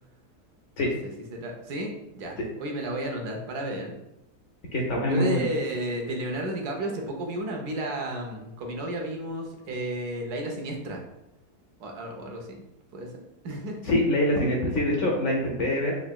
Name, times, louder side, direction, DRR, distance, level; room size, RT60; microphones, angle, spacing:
voice 1, 1.3-4.0 5.0-11.0 11.8-12.6 12.9-13.8, right 1 dB, 70° right, 1 dB, 1.1 m, -32 dB
voice 2, 4.7-5.4 13.8-16.0, left 1 dB, 70° left, -1 dB, 0.7 m, -24 dB
3.8 x 3.2 x 2.2 m, 0.88 s
omnidirectional pair, 1.8 m